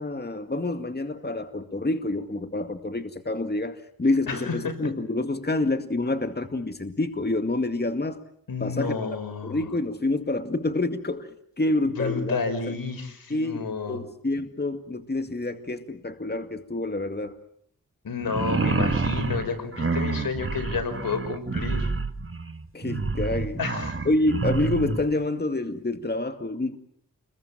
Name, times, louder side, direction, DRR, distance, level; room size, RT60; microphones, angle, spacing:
voice 1, 0.0-8.2 8.6-8.9 9.4-12.4 12.7-12.8 13.3-17.4 22.7-23.6 24.1-26.8, left 2 dB, 30° left, 8 dB, 2.1 m, -27 dB
voice 2, 4.3-4.9 8.5-9.6 12.0-14.0 18.0-21.9 23.6-24.0, left 5 dB, 80° left, 7 dB, 5.5 m, -30 dB
sound 1, 18.2-25.0, right 4 dB, 35° right, 2.0 m, -28 dB
29.5 x 22.0 x 7.5 m, 0.64 s
cardioid pair, 55°, 34 cm